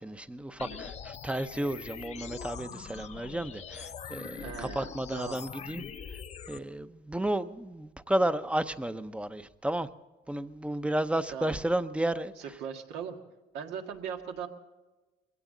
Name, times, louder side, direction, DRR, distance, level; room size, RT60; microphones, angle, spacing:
voice 1, 0.0-5.8 6.5-9.9 10.3-12.3, right 1 dB, 5° right, 0.7 m, -32 dB
sound 1, 0.6-6.6, left 7 dB, 40° left, 0.7 m, -43 dB
voice 2, 4.4-5.4 11.3-11.6 12.4-13.2 13.5-14.5, right 7 dB, 90° right, 1.7 m, -39 dB
22.5 x 16.5 x 3.9 m
cardioid pair, 110°, 17 cm